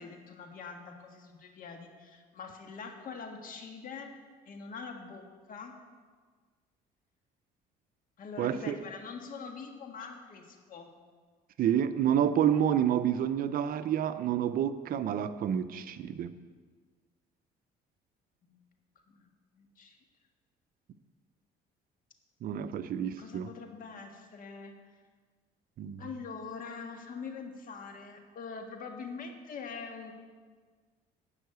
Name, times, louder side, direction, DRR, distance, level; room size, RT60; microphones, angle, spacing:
voice 1, 0.0-4.1 4.5-5.7 8.2-10.9 18.4-18.6 19.1-20.0 23.2-24.7 26.0-30.1, left 5 dB, 55° left, 4 dB, 1.6 m, -44 dB
voice 2, 8.4-8.8 11.6-16.3 22.4-23.5 25.8-26.0, right 9 dB, 60° right, 12 dB, 0.6 m, -29 dB
11.0 x 5.7 x 8.0 m, 1.5 s
cardioid pair, 110°, 17 cm